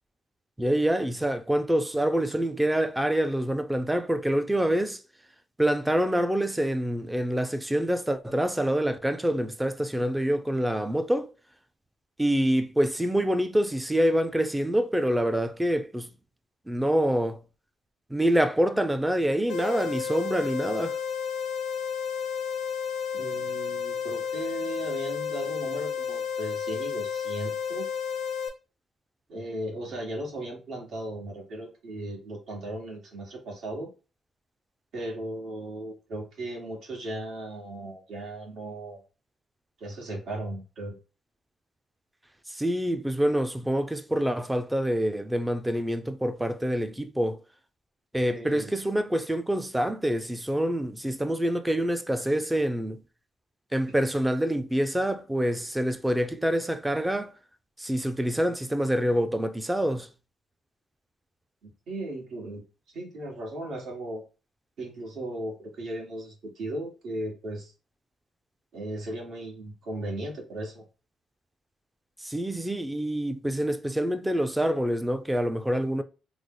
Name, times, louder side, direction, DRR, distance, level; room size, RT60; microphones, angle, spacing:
voice 1, 0.6-5.0 5.6-11.3 12.2-16.1 16.7-17.4 18.1-21.0 42.5-47.4 48.1-53.0 53.7-57.3 57.8-60.1 72.2-76.0, right 1 dB, 10° right, 0.4 m, -26 dB
sound 1, 19.5-28.5, left 7 dB, 85° left, 0.6 m, -32 dB
voice 2, 23.1-27.9 29.3-33.9 34.9-39.0 39.8-40.9 48.3-48.7 61.6-62.6 62.9-64.2 64.8-67.7 68.7-70.8, right 1 dB, 70° right, 1.4 m, -36 dB
3.2 x 2.0 x 3.6 m
cardioid pair, 90°, 0 cm